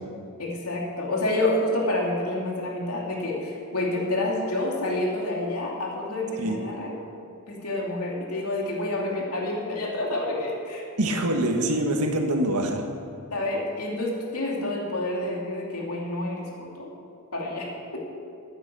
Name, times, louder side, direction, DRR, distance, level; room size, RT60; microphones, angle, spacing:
voice 1, 0.4-6.9 7.5-10.8 13.3-16.9 17.3-18.0, left 1 dB, 85° left, -2 dB, 2.7 m, -28 dB
voice 2, 11.0-12.8, right 1 dB, 90° right, 3 dB, 1.6 m, -24 dB
14.5 x 9.5 x 6.2 m, 2.4 s
head